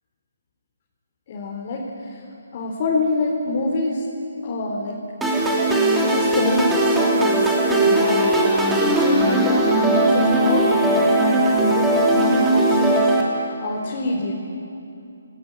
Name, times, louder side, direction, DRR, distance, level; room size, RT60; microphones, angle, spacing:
voice 1, 1.3-2.2 2.5-4.0 4.4-5.0 6.0-8.3 8.6-14.3, left 2 dB, 40° left, -2 dB, 4.2 m, -26 dB
sound 1, 5.2-13.2, right 1 dB, 5° right, 3.5 m, -18 dB
27.5 x 18.5 x 8.9 m, 2.7 s
figure-of-eight pair, 150°, 0 cm